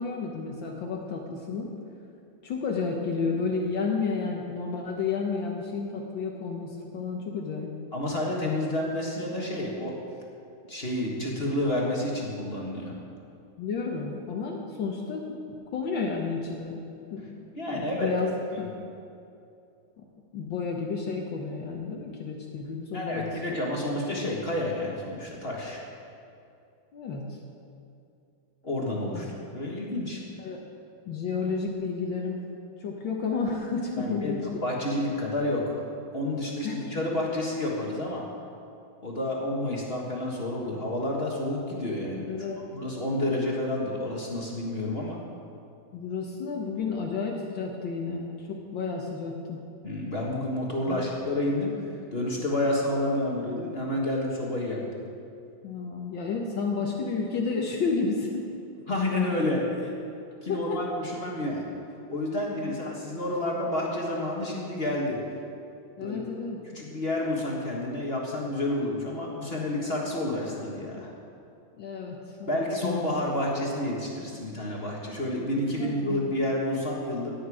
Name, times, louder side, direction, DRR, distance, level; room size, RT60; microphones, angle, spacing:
voice 1, 0.0-1.7 2.4-7.7 13.6-16.8 17.1-17.3 17.7-18.7 20.0-20.1 20.3-23.4 26.9-27.4 29.1-29.3 29.6-29.7 30.4-30.6 31.1-32.5 32.8-34.5 36.6-36.8 42.3-42.6 45.9-49.6 50.9-51.0 55.6-58.5 58.8-58.9 60.5-60.8 62.6-62.8 66.0-66.6 71.8-73.0 75.8-76.3, left 4 dB, 70° left, 0 dB, 1.7 m, -31 dB
voice 2, 7.9-9.9 10.7-12.9 17.5-18.1 18.5-18.6 22.9-25.8 28.6-29.3 29.5-30.2 34.0-35.8 36.1-38.2 39.0-42.3 42.7-45.2 46.8-46.9 49.8-51.7 52.1-54.8 58.9-59.9 60.4-61.7 62.1-65.2 66.0-66.2 66.6-71.1 72.5-77.3, left 1 dB, 30° left, -3 dB, 1.6 m, -29 dB
17.5 x 8.8 x 4.8 m, 2.6 s
omnidirectional pair, 2.2 m